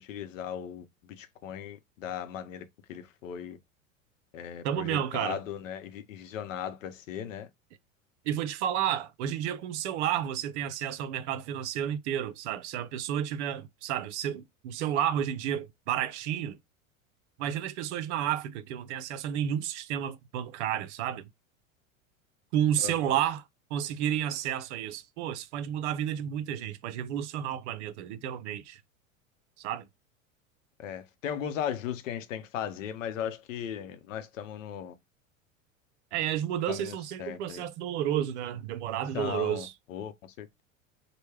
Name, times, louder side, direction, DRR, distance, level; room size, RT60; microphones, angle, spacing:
voice 1, 0.0-2.6 2.9-3.6 4.3-7.5 22.8-23.2 30.8-35.0 36.7-37.6 39.1-40.6, left 9 dB, 65° left, 0.7 m, -37 dB
voice 2, 4.6-5.4 8.2-16.6 17.4-21.3 22.5-23.4 23.7-28.8 29.6-29.8 36.1-39.7, right 10 dB, 55° right, 0.6 m, -31 dB
3.1 x 2.2 x 3.2 m
figure-of-eight pair, 85°, 41 cm